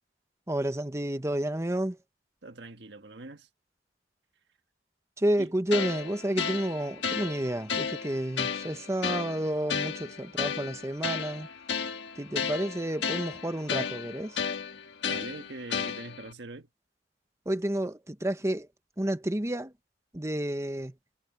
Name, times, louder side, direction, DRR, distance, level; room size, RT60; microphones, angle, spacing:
voice 1, 0.5-2.0 5.2-11.5 12.2-14.4 17.5-18.7 19.0-19.7 20.1-20.9, right 1 dB, 15° right, 1.0 m, -30 dB
voice 2, 2.4-3.5 5.4-5.5 15.1-16.7, right 2 dB, 70° right, 1.6 m, -42 dB
sound 1, 5.7-16.3, left 6 dB, 75° left, 1.6 m, -33 dB
head